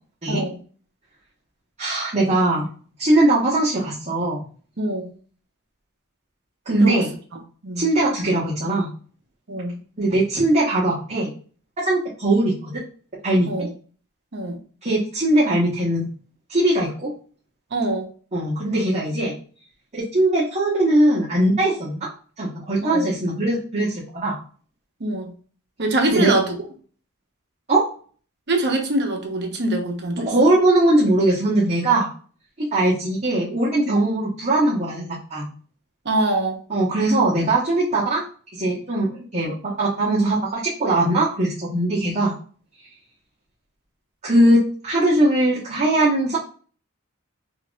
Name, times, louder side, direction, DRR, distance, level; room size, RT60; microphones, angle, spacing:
voice 1, 0.3-0.6 4.8-5.1 6.8-7.1 7.6-7.9 9.5-9.8 13.5-13.7 14.3-14.6 17.7-18.1 22.8-23.1 25.0-25.3 25.8-26.6 28.5-30.5 36.0-36.6 42.0-42.1, right 2 dB, 50° right, 3 dB, 0.8 m, -24 dB
voice 2, 1.8-2.7 3.0-4.4 6.7-7.1 7.8-8.9 10.0-11.3 11.8-12.8 13.2-13.7 14.8-16.1 16.5-17.1 18.3-19.3 19.9-22.1 22.4-24.4 26.1-26.3 27.7-27.8 30.3-32.1 32.6-35.5 36.7-38.2 38.5-42.3 44.2-46.4, right 1 dB, 30° right, -7 dB, 1.1 m, -20 dB
5.6 x 2.6 x 2.3 m, 0.42 s
head